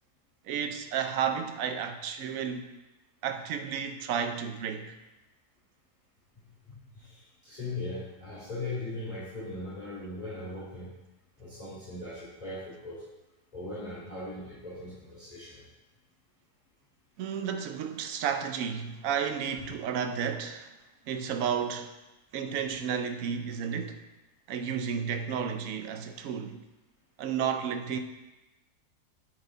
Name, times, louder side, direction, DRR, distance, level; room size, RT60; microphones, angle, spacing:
voice 1, 0.4-2.6 3.2-4.9 17.2-20.7 21.1-21.9 22.3-24.0 24.5-26.6 27.2-28.0, right 7 dB, 65° right, 1.0 m, -32 dB
voice 2, 6.7-10.9 11.4-13.0 13.5-15.6, left 2 dB, 20° left, 2.8 m, -39 dB
9.8 x 4.9 x 3.9 m
omnidirectional pair, 1.7 m